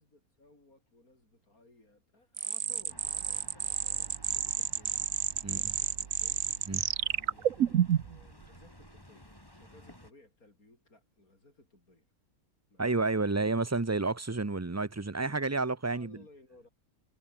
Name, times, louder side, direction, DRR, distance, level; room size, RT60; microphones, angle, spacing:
voice 1, 0.0-6.4 7.0-12.1 12.7-13.1 15.9-16.7, left 2 dB, 70° left, 7.6 m, -61 dB
sound 1, 2.4-8.2, right 10 dB, 65° right, 1.3 m, -30 dB
sound 2, 2.9-10.1, left 1 dB, 15° left, 6.2 m, -55 dB
voice 2, 12.8-16.2, right 3 dB, 20° right, 0.4 m, -30 dB
omnidirectional pair, 1.6 m